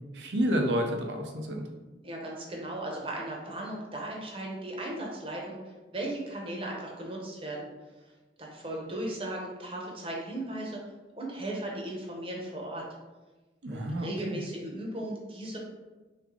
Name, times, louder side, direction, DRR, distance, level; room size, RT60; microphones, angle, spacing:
voice 1, 0.1-1.6 13.6-14.4, equal, 90° right, 3 dB, 0.6 m, -30 dB
voice 2, 2.0-5.6 5.9-7.7 8.4-10.8 11.2-12.8 13.7-15.6, right 1 dB, 30° right, -2 dB, 0.8 m, -36 dB
3.4 x 3.2 x 3.7 m, 1.2 s
head